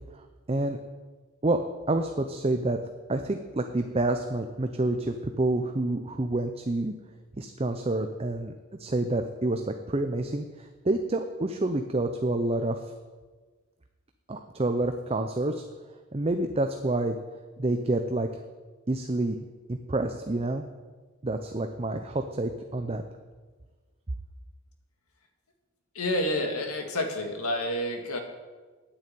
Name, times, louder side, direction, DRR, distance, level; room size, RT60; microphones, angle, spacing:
voice 1, 0.1-0.8 1.4-1.6 1.9-2.8 3.1-7.0 7.4-8.5 8.8-12.9 14.3-15.6 16.1-17.2 17.6-18.3 18.9-20.6 21.2-23.0, right 2 dB, 25° right, 6 dB, 0.6 m, -28 dB
voice 2, 25.9-28.2, left 1 dB, 85° left, 4 dB, 2.1 m, -29 dB
9.3 x 8.8 x 9.2 m, 1.3 s
head